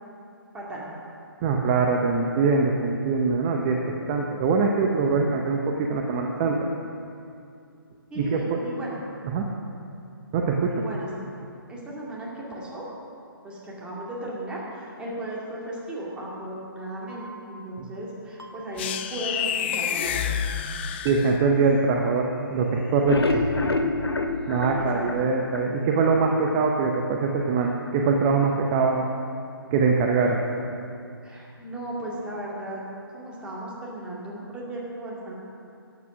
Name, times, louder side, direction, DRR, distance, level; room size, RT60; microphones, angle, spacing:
voice 1, 0.5-0.9 8.1-9.0 10.8-11.1 11.7-12.8 13.4-20.3 23.3-23.4 24.8-25.0 31.2-32.8 33.1-35.3, right 1 dB, 10° right, -6 dB, 2.2 m, -36 dB
voice 2, 1.4-6.7 8.2-8.6 9.3-9.5 10.3-10.8 17.8-17.9 21.0-23.4 24.5-29.1 29.7-30.4, right 4 dB, 25° right, 1 dB, 0.8 m, -23 dB
sound 1, 17.1-17.2 18.4-18.5 19.7-19.8 21.1-21.2, right 3 dB, 85° right, 2.1 m, -41 dB
sound 2, 18.8-21.7, left 9 dB, 25° left, 0.4 m, -29 dB
sound 3, 22.9-26.1 26.5-26.6 26.9-27.0 27.4-27.5, left 3 dB, 90° left, 1.0 m, -27 dB
12.0 x 8.7 x 6.0 m, 2.5 s
figure-of-eight pair, 145°, 13 cm